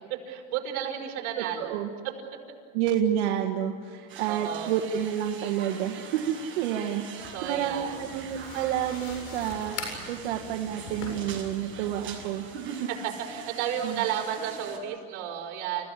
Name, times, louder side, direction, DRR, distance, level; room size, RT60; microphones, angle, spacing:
voice 1, 0.1-1.8 4.3-4.7 7.3-8.0 12.9-15.9, right 9 dB, 70° right, 1 dB, 5.6 m, -32 dB
voice 2, 1.4-1.9 2.7-12.9 13.8-14.0, right 10 dB, 90° right, 2 dB, 1.8 m, -29 dB
sound 1, 4.1-14.8, right 6 dB, 40° right, 7.6 m, -44 dB
sound 2, 7.2-12.3, left 4 dB, 70° left, 7.9 m, -42 dB
29.5 x 16.5 x 9.8 m, 2.1 s
supercardioid pair, 115°, 32 cm